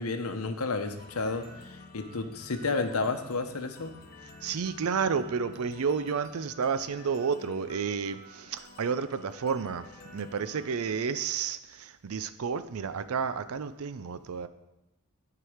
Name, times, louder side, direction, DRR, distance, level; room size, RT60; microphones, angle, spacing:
voice 1, 0.0-3.9, left 3 dB, 85° left, 7 dB, 0.8 m, -31 dB
sound 1, 1.0-10.9, left 2 dB, 40° left, 1.0 m, -51 dB
voice 2, 4.4-9.8 10.1-14.5, right 6 dB, 80° right, 13 dB, 0.5 m, -31 dB
11.0 x 4.8 x 4.9 m, 0.95 s
head